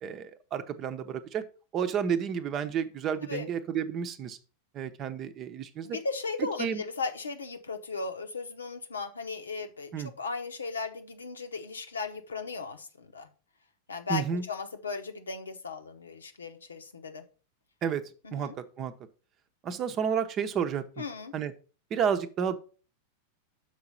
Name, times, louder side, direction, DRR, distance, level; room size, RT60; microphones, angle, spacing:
voice 1, 0.0-1.4 1.7-4.4 4.7-6.0 6.6-6.8 9.9-10.1 14.1-14.4 17.8-18.0 18.3-18.9 19.6-21.0 21.3-21.5 21.9-22.6, right 7 dB, 30° right, 9 dB, 0.8 m, -31 dB
voice 2, 5.8-13.3 13.9-17.2 18.2-18.6 21.0-21.3, left 4 dB, 75° left, 7 dB, 1.0 m, -36 dB
6.6 x 4.8 x 5.5 m, 0.37 s
figure-of-eight pair, 90°, 0 cm